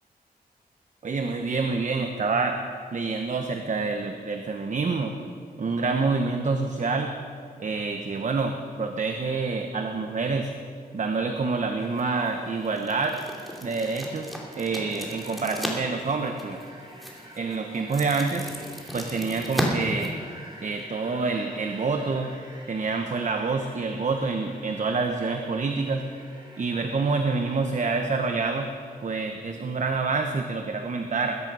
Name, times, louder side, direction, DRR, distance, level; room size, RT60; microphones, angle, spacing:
voice 1, 1.0-2.6 2.9-5.1 5.6-7.1 7.6-10.5 10.9-13.2 13.6-14.3 14.6-16.6 17.3-18.5 18.9-20.1 20.6-22.3 22.7-26.0 26.6-28.7 29.0-31.4, right 4 dB, 50° right, 5 dB, 1.0 m, -27 dB
sound 1, 10.8-29.4, right 1 dB, 30° right, 3.1 m, -49 dB
sound 2, 11.8-20.8, equal, ahead, 2.7 m, -36 dB
21.0 x 10.5 x 5.5 m, 2.3 s
wide cardioid pair, 105°, 16 cm